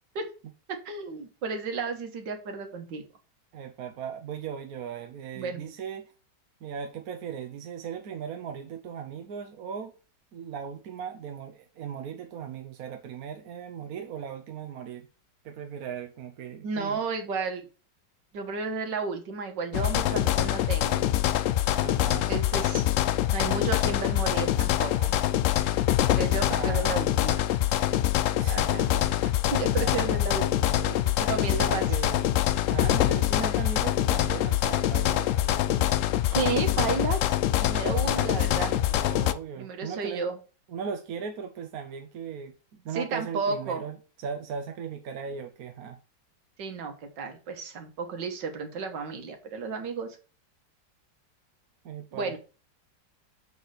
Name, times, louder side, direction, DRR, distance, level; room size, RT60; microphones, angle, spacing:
voice 1, 0.7-3.0 5.4-5.7 16.6-17.7 18.3-21.0 22.3-22.9 23.3-25.1 26.2-27.4 28.5-28.9 29.5-30.5 31.2-31.8 36.3-37.3 37.6-38.8 39.6-40.4 42.9-43.8 46.6-50.2 52.1-52.4, right 4 dB, 80° right, 2.0 m, -32 dB
voice 2, 3.5-6.1 6.6-9.9 10.3-15.1 15.4-17.0 21.8-22.3 26.5-27.2 28.3-29.1 29.7-31.1 31.5-32.3 32.7-36.0 38.0-40.3 40.7-46.0 51.8-52.4, right 7 dB, 65° right, 1.1 m, -38 dB
sound 1, 19.7-39.3, left 13 dB, 85° left, 0.7 m, -25 dB
6.9 x 4.1 x 6.4 m
omnidirectional pair, 1.9 m